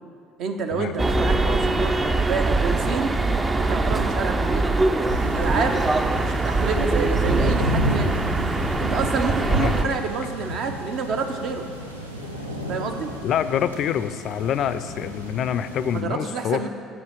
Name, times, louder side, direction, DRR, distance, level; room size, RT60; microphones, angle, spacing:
voice 1, 0.4-3.1 3.6-4.7 5.2-5.8 6.2-8.2 8.8-11.7 12.7-13.1 15.9-16.7, right 5 dB, 50° right, 5 dB, 0.7 m, -28 dB
sound 1, 1.0-9.9, right 2 dB, 25° right, 0.5 m, -22 dB
sound 2, 5.1-16.0, equal, 85° right, 0.6 m, -31 dB
voice 2, 9.5-10.0 13.2-16.7, left 9 dB, 50° left, 12 dB, 0.3 m, -26 dB
7.8 x 5.5 x 6.4 m, 2.1 s
figure-of-eight pair, 55°, 0 cm